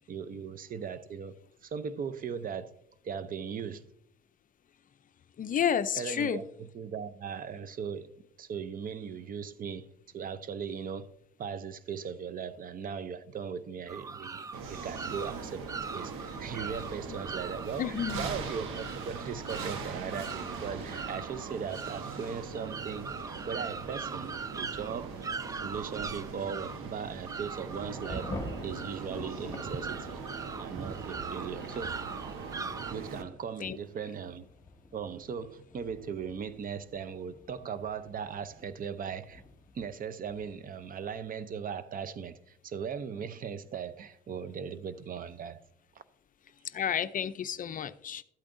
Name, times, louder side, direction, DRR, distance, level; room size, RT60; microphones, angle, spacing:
voice 1, 0.1-1.4 1.6-2.7 3.0-3.9 5.9-9.9 10.1-11.1 11.4-15.7 15.9-25.2 25.6-28.3 28.6-30.2 30.6-32.0 32.9-34.4 34.9-39.4 39.7-45.6, right 6 dB, 45° right, 0.7 m, -38 dB
voice 2, 5.4-6.4 17.1-17.2 17.8-18.2 33.6-33.8 46.6-48.2, left 8 dB, 40° left, 0.5 m, -31 dB
sound 1, 13.9-32.9, right 5 dB, 15° right, 0.3 m, -41 dB
sound 2, 14.5-33.2, right 4 dB, 80° right, 1.2 m, -41 dB
Thunder / Rain, 27.2-41.6, left 3 dB, 15° left, 1.5 m, -49 dB
12.5 x 8.6 x 2.6 m
cardioid pair, 90°, 21 cm